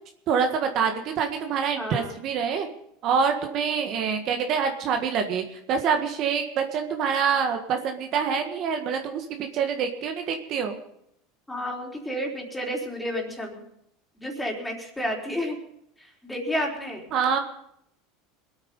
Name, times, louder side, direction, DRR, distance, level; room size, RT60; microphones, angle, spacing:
voice 1, 0.3-2.7 3.0-10.7 17.1-17.4, right 6 dB, 50° right, 5 dB, 1.6 m, -26 dB
voice 2, 1.7-2.1 11.5-13.6 14.2-15.6 16.0-17.0, equal, 5° left, 0 dB, 3.9 m, -31 dB
21.5 x 9.0 x 5.4 m, 0.74 s
supercardioid pair, 125°, 0 cm